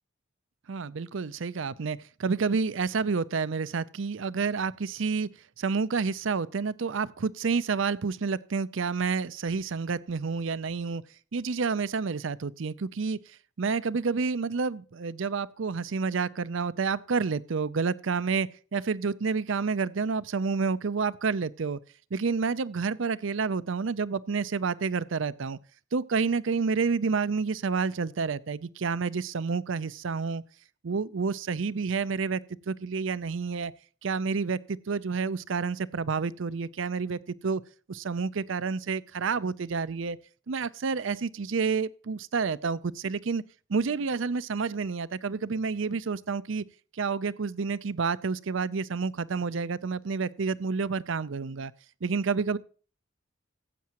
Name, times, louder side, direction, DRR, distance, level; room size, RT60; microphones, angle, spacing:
voice 1, 0.7-5.3 5.6-11.0 11.3-21.8 22.1-25.6 25.9-30.4 30.8-32.4 32.7-33.7 34.0-37.6 37.9-40.2 40.5-43.4 43.7-46.6 46.9-51.7 52.0-52.6, right 5 dB, 70° right, 0.5 m, -29 dB
15.0 x 8.5 x 3.0 m
head